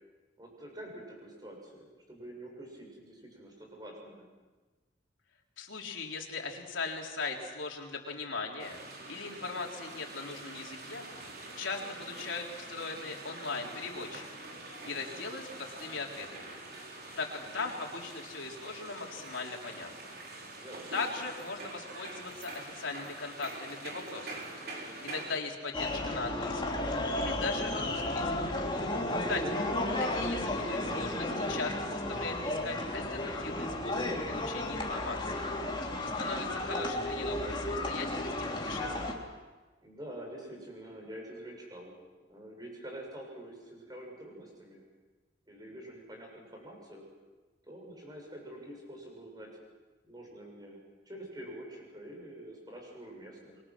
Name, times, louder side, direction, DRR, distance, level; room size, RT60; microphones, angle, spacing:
voice 1, 0.4-4.3 20.4-21.1 28.9-29.5 39.8-41.9 42.3-44.8 45.5-47.0 47.6-49.5 50.0-50.8 51.0-53.6, right 1 dB, 20° right, 0 dB, 6.8 m, -46 dB
voice 2, 5.6-8.8 9.1-11.1 11.6-14.5 14.8-16.5 17.2-19.9 20.9-24.4 25.0-26.8 27.1-28.6 29.3-29.4 30.0-35.5 36.0-38.3 38.6-39.1, left 4 dB, 85° left, 0 dB, 3.8 m, -39 dB
sound 1, 8.6-25.4, right 2 dB, 55° right, 4.6 m, -45 dB
sound 2, 25.7-39.1, left 1 dB, 25° left, 3.0 m, -33 dB
28.5 x 23.5 x 6.2 m, 1.3 s
head